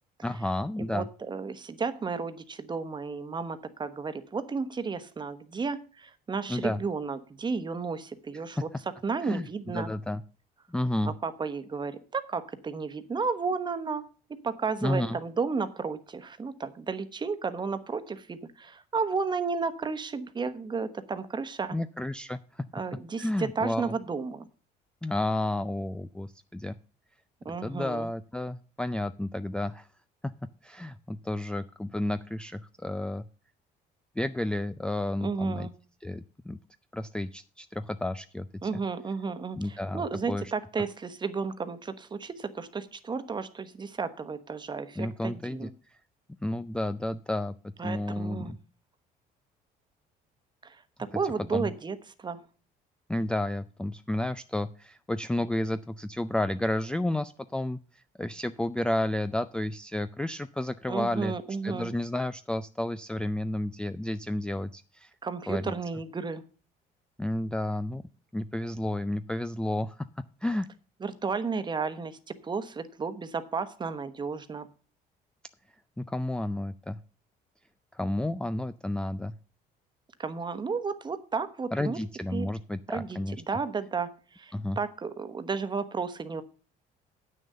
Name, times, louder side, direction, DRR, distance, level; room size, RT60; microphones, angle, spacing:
voice 1, 0.2-1.1 6.5-6.8 9.2-10.2 10.7-11.1 14.8-15.2 21.7-22.7 23.2-24.0 25.0-26.7 27.6-29.9 30.6-33.2 34.2-35.7 36.0-36.6 36.9-38.5 39.5-40.5 45.0-45.7 46.4-47.5 47.8-48.6 51.5-51.7 53.1-61.3 61.6-65.1 65.5-65.7 67.2-68.0 68.3-70.7 76.0-77.0 77.9-79.3 81.7-83.4 84.5-84.8, left 1 dB, 5° left, 12 dB, 0.4 m, -31 dB
voice 2, 0.9-8.7 9.0-9.9 11.0-14.0 14.4-21.8 22.7-24.5 27.4-28.1 35.2-35.7 38.6-45.7 47.8-48.5 50.6-50.8 51.1-52.4 60.9-61.9 65.2-66.4 71.0-74.7 80.2-82.0 82.3-82.5 82.9-83.2 83.5-86.4, right 5 dB, 25° right, 11 dB, 1.1 m, -33 dB
8.9 x 6.4 x 6.7 m, 0.38 s
cardioid pair, 110°, 17 cm